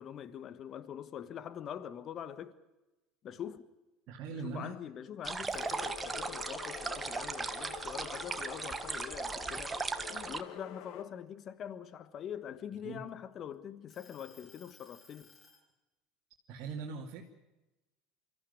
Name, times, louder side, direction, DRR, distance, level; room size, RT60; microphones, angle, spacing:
voice 1, 0.0-2.5 3.2-3.7 4.4-15.3, left 9 dB, 45° left, 1.4 m, -44 dB
voice 2, 4.1-4.7 12.8-13.0 16.5-17.2, right 4 dB, 55° right, 2.6 m, -41 dB
sound 1, 5.2-10.4, right 4 dB, 20° right, 1.4 m, -38 dB
sound 2, 5.4-6.3 6.8-8.6 9.0-9.3 9.7-11.5 12.2-13.3 13.9-15.6, left 4 dB, 30° left, 7.5 m, -61 dB
sound 3, 5.5-11.0, left 9 dB, 65° left, 1.8 m, -47 dB
25.0 x 14.5 x 9.4 m
hypercardioid pair, 80°, 0 cm